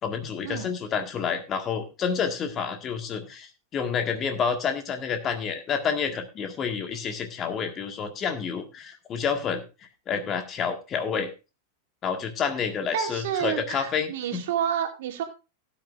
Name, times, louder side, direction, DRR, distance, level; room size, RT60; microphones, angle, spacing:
voice 1, 0.0-9.6 10.1-11.3 12.0-14.4, left 6 dB, 30° left, 6 dB, 1.7 m, -29 dB
voice 2, 12.9-15.2, right 9 dB, 55° right, 4 dB, 2.5 m, -29 dB
17.5 x 9.1 x 2.5 m, 0.29 s
figure-of-eight pair, 90°, 0 cm